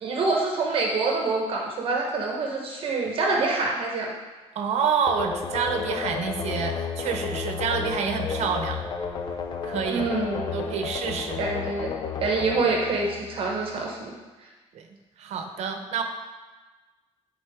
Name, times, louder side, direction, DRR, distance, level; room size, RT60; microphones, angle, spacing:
voice 1, 0.0-4.1 9.9-10.8 11.4-14.1, right 3 dB, 55° right, -1 dB, 1.1 m, -26 dB
voice 2, 4.5-8.8 9.6-10.0 10.5-11.4 14.7-14.9 15.2-16.0, right 6 dB, 80° right, 5 dB, 0.8 m, -28 dB
sound 1, 5.1-13.8, left 6 dB, 40° left, 0.5 m, -32 dB
10.0 x 4.1 x 3.6 m, 1.3 s
cardioid pair, 165°, 11 cm